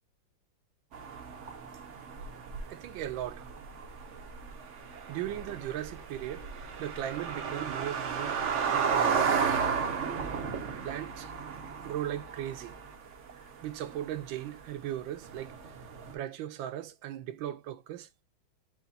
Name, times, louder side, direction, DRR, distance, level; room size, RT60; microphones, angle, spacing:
sound 1, 0.9-16.1, right 6 dB, 60° right, 0.8 m, -34 dB
voice 1, 2.7-3.5 5.1-6.5 6.8-8.4 8.7-9.2 10.8-11.3 11.8-12.8 13.6-15.5 16.1-18.1, right 12 dB, 75° right, 1.3 m, -37 dB
4.9 x 2.8 x 3.9 m
omnidirectional pair, 2.2 m